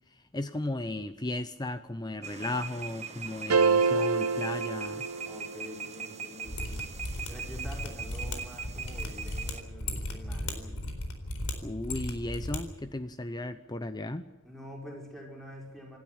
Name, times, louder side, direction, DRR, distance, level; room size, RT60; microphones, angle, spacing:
voice 1, 0.1-5.1 11.6-14.3, left 1 dB, 20° left, 11 dB, 0.7 m, -35 dB
sound 1, 2.2-9.6, right 6 dB, 30° right, 1.5 m, -41 dB
sound 2, 3.5-5.8, right 5 dB, 85° right, 0.9 m, -26 dB
voice 2, 5.3-6.9 7.3-10.9 14.4-16.0, equal, ahead, -1 dB, 5.8 m, -46 dB
Mechanisms, 6.5-12.6 12.8-12.9, left 1 dB, 80° left, 4.1 m, -36 dB
27.5 x 12.5 x 9.9 m, 1.2 s
head